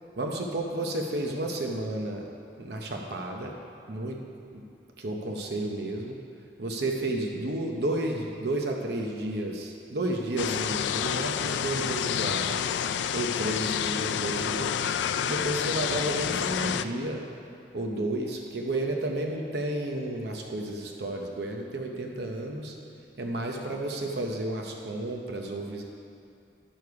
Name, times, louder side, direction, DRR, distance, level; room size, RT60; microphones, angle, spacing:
voice 1, 0.2-2.3 2.6-3.5 3.9-4.2 4.5-4.6 5.0-6.2 6.6-12.7 13.1-17.2 17.7-22.8 23.2-25.8, right 1 dB, 70° right, 1 dB, 0.8 m, -32 dB
sound 1, 10.4-16.9, left 8 dB, 90° left, 0.3 m, -29 dB
11.0 x 6.8 x 4.7 m, 2.6 s
head